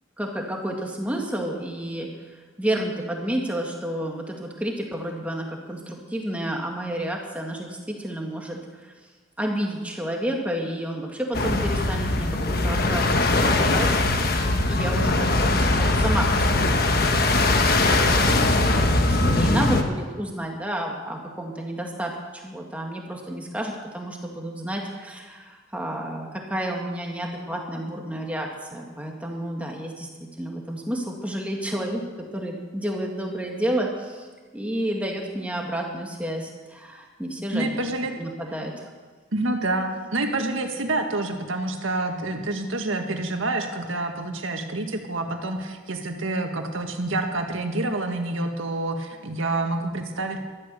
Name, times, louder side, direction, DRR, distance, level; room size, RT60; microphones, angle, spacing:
voice 1, 0.2-8.9 9.4-14.0 14.2-14.4 14.7-30.1 30.4-32.0 32.3-34.3 34.5-37.8 38.2-38.9, right 1 dB, 5° right, 0 dB, 1.9 m, -30 dB
sound 1, 11.3-19.8, left 2 dB, 50° left, 1.2 m, -21 dB
voice 2, 37.5-38.1 39.3-50.4, right 2 dB, 85° right, 4 dB, 1.8 m, -27 dB
13.5 x 13.0 x 7.0 m, 1.4 s
head